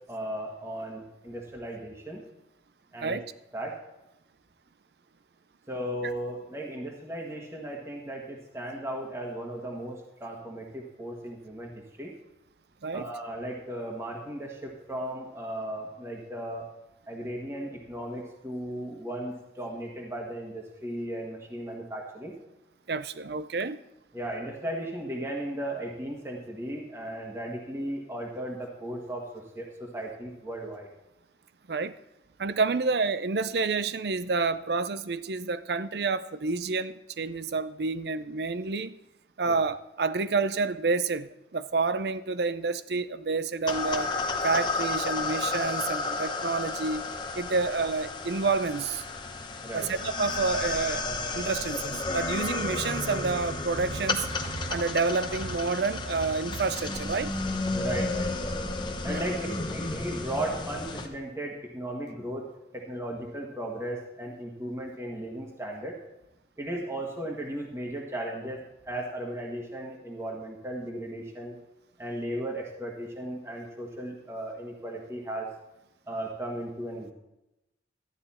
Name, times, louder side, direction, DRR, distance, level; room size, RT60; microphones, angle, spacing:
voice 1, 0.0-2.2 2.9-3.2 3.5-3.7 5.7-12.1 12.9-16.7 17.1-22.3 24.1-29.3 29.5-30.9 39.5-39.6 47.6-47.7 49.6-49.9 57.7-58.5 59.0-62.4 62.7-66.0 66.6-71.6 72.0-75.5 76.1-77.1, right 1 dB, 15° right, -1 dB, 1.5 m, -36 dB
voice 2, 22.9-23.8 31.7-31.9 32.4-38.9 39.4-44.1 44.4-47.0 47.4-49.0 49.7-51.0 51.3-57.3 59.1-59.2, right 4 dB, 60° right, 14 dB, 0.5 m, -29 dB
sound 1, 43.7-61.1, left 3 dB, 25° left, 0.9 m, -32 dB
13.0 x 10.0 x 4.3 m, 0.93 s
head